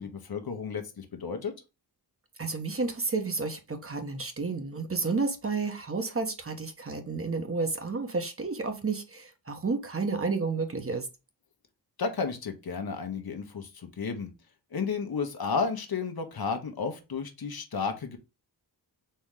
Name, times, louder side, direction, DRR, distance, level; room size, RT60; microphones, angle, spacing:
voice 1, 0.0-1.5 12.0-14.3 14.7-18.2, left 5 dB, 60° left, 1.1 m, -32 dB
voice 2, 2.4-11.1, right 4 dB, 30° right, 1.0 m, -31 dB
4.3 x 3.1 x 3.7 m
cardioid pair, 70°, 42 cm